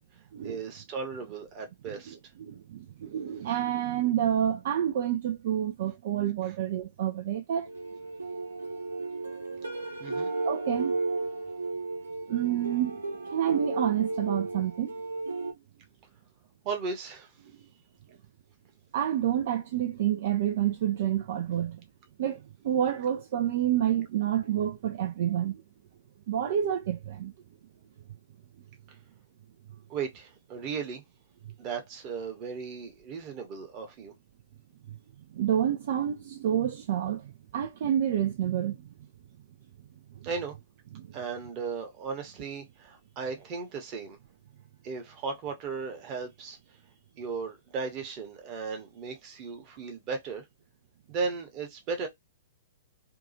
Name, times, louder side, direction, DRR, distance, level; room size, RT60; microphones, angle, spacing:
voice 1, 0.4-2.2 10.0-10.3 16.6-17.3 28.9-29.0 29.9-31.0 31.6-34.1 40.2-40.6 41.1-44.2 44.8-46.8 47.2-50.4 51.1-52.1, right 5 dB, 30° right, 0.9 m, -36 dB
voice 2, 2.5-7.7 10.4-11.0 12.3-14.9 18.9-21.8 22.2-25.6 26.3-27.3 34.9-35.0 35.3-38.9 40.2-40.3 40.9-41.1, right 10 dB, 50° right, 0.3 m, -28 dB
sound 1, 7.7-15.5, right 3 dB, 75° right, 0.9 m, -34 dB
2.7 x 2.3 x 2.7 m
figure-of-eight pair, 110°, 0 cm